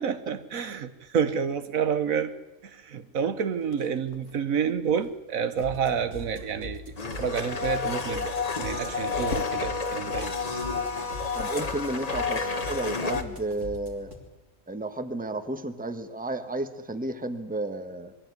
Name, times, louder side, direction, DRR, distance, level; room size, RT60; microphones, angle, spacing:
voice 1, 0.0-2.3 2.6-6.8 7.2-10.3, right 7 dB, 75° right, 12 dB, 1.5 m, -29 dB
sound 1, 3.5-5.3 5.6-5.9 6.4-6.7 7.1-7.6 7.9-8.3 8.7-9.9 10.2-10.4 10.8-11.5, left 4 dB, 60° left, 1.5 m, -44 dB
sound 2, 5.5-14.2, left 3 dB, 55° right, 4.2 m, -42 dB
Domestic sounds home sounds, 7.0-13.2, left 4 dB, 30° left, 1.3 m, -30 dB
voice 2, 11.3-14.1 14.7-18.1, right 2 dB, 5° right, 9 dB, 1.2 m, -32 dB
22.0 x 15.5 x 9.6 m, 1.1 s
omnidirectional pair, 1.5 m